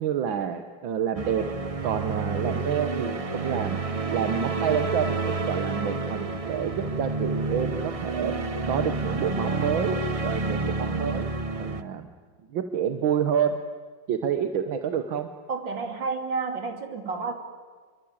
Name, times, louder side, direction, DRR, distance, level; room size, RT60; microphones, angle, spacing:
voice 1, 0.0-1.4 1.8-3.8 4.1-8.3 8.7-11.3 11.6-12.1 12.5-13.6 14.1-15.3, right 8 dB, 90° right, 8 dB, 1.9 m, -28 dB
sound 1, 1.2-11.8, right 3 dB, 25° right, 0.7 m, -29 dB
voice 2, 15.5-17.3, right 4 dB, 70° right, 5 dB, 3.5 m, -30 dB
28.5 x 23.0 x 8.8 m, 1.5 s
omnidirectional pair, 2.1 m